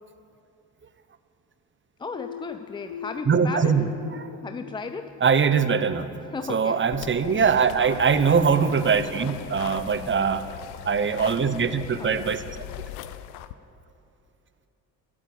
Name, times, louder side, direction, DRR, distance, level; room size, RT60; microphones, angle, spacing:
voice 1, 2.0-3.8 4.4-5.2 6.3-6.8 7.8-7.9 12.0-12.3, left 4 dB, 10° left, 8 dB, 0.3 m, -35 dB
sound 1, 2.1-5.8, left 10 dB, 50° left, 1.0 m, -41 dB
voice 2, 3.3-3.9 4.2-4.3 5.2-6.1 6.5-10.4 10.8-12.6, right 6 dB, 25° right, 12 dB, 0.9 m, -22 dB
sound 2, 6.9-13.5, left 13 dB, 70° left, 0.7 m, -40 dB
13.5 x 12.5 x 7.1 m, 2.9 s
figure-of-eight pair, 50°, 49 cm